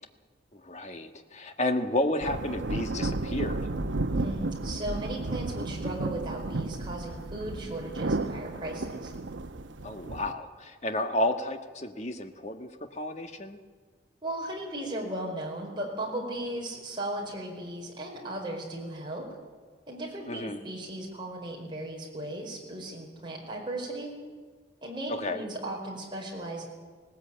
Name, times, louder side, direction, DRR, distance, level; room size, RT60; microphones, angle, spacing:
voice 1, 0.5-3.6 9.8-13.6 20.3-20.6 25.1-25.4, left 1 dB, 35° left, 6 dB, 1.4 m, -31 dB
sound 1, 2.2-10.3, right 2 dB, 90° right, 0.9 m, -33 dB
voice 2, 4.1-9.1 14.2-19.2 19.9-24.1 24.8-26.7, right 1 dB, 25° right, -1 dB, 4.8 m, -36 dB
19.0 x 18.5 x 8.8 m, 1.5 s
head